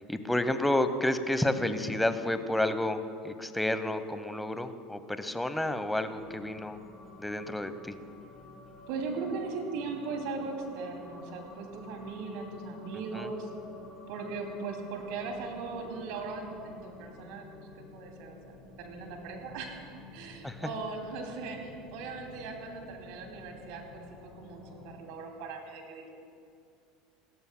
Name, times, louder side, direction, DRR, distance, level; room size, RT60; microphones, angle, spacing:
voice 1, 0.1-6.8 7.2-7.9 13.1-13.3 20.4-20.7, left 1 dB, 5° left, 10 dB, 1.0 m, -30 dB
sound 1, 6.2-25.0, left 2 dB, 30° left, 4.0 m, -51 dB
voice 2, 8.9-13.5 14.1-17.5 17.7-26.1, right 4 dB, 60° right, 2 dB, 2.6 m, -39 dB
27.5 x 14.0 x 2.2 m, 2.4 s
hypercardioid pair, 75°, 0 cm